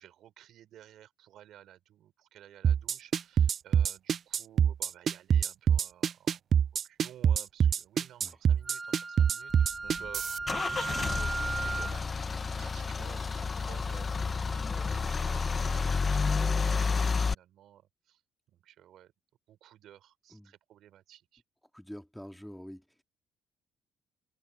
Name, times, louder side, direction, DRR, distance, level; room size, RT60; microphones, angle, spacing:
voice 1, 0.0-6.6 6.8-12.0 12.6-18.2 18.5-19.1 19.5-21.4, right 12 dB, 70° right, 5.4 m, -53 dB
sound 1, 2.6-10.4, right 8 dB, 55° right, 0.4 m, -25 dB
Wind instrument woodwind instrument, 8.6-12.0, right 3 dB, 30° right, 4.2 m, -36 dB
Car / Engine starting / Idling, 9.5-17.3, left 5 dB, 35° left, 1.0 m, -30 dB
voice 2, 21.7-23.0, equal, 5° left, 2.6 m, -46 dB
supercardioid pair, 60°, 0 cm